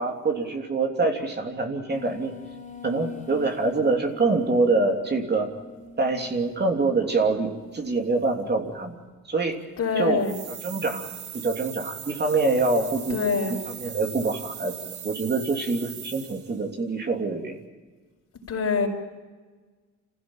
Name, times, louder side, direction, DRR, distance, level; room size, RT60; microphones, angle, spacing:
voice 1, 0.0-2.3 2.8-5.5 6.0-9.0 9.3-9.6 10.0-10.2 10.6-11.1 11.3-13.2 13.8-14.7 15.0-17.6, right 3 dB, 35° right, 3 dB, 3.1 m, -25 dB
sound 1, 1.9-8.0, left 4 dB, 25° left, 4.1 m, -43 dB
voice 2, 9.8-10.4 13.1-13.6 18.5-18.9, left 5 dB, 55° left, 2 dB, 5.2 m, -25 dB
sound 2, 10.2-16.6, right 10 dB, 75° right, 1.6 m, -39 dB
27.0 x 15.5 x 9.0 m, 1.4 s
cardioid pair, 90°, 30 cm